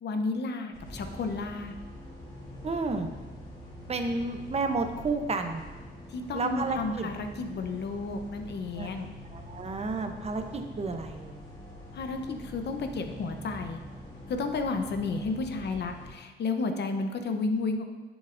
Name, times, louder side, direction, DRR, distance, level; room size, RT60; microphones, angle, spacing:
voice 1, 0.0-1.8 6.1-9.1 11.9-13.8 14.3-17.8, left 3 dB, 60° left, 6 dB, 0.8 m, -32 dB
sound 1, 0.7-16.1, left 1 dB, 25° left, 2.5 m, -45 dB
voice 2, 2.6-3.1 3.9-5.6 6.3-7.1 8.8-8.9 9.3-11.4, right 3 dB, 35° right, 6 dB, 0.7 m, -31 dB
9.4 x 7.1 x 2.6 m, 1.3 s
cardioid pair, 110°, 19 cm